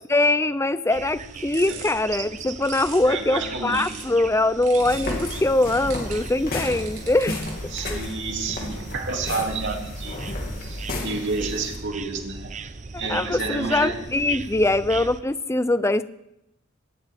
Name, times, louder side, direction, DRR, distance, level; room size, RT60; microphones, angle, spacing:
voice 1, 0.1-7.4 7.9-8.0 13.1-16.0, left 2 dB, 15° left, 14 dB, 0.5 m, -22 dB
sound 1, 0.9-15.2, right 4 dB, 35° right, 0.7 m, -39 dB
sound 2, 1.2-4.2 4.6-7.8, right 7 dB, 85° right, 4.2 m, -42 dB
voice 2, 3.0-4.0 7.7-10.2 10.6-12.5 13.0-14.0, right 3 dB, 60° right, 1 dB, 2.7 m, -30 dB
sound 3, 4.8-11.8, left 1 dB, 45° left, 2.7 m, -33 dB
22.0 x 18.0 x 3.6 m, 0.85 s
head